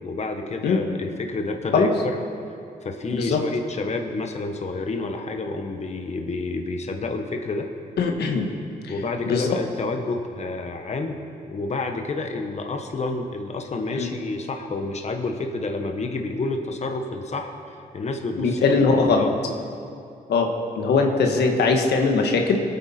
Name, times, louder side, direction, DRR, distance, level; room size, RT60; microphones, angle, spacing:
voice 1, 0.0-2.2 2.8-7.7 8.9-11.2 11.5-18.7 19.1-19.4, left 3 dB, 40° left, 4 dB, 1.2 m, -29 dB
voice 2, 8.0-8.5 9.3-9.5 14.0-14.1 18.4-19.2 20.3-20.5 20.8-22.6, left 4 dB, 85° left, 3 dB, 1.4 m, -20 dB
21.5 x 9.3 x 4.3 m, 2.5 s
cardioid pair, 95°, 17 cm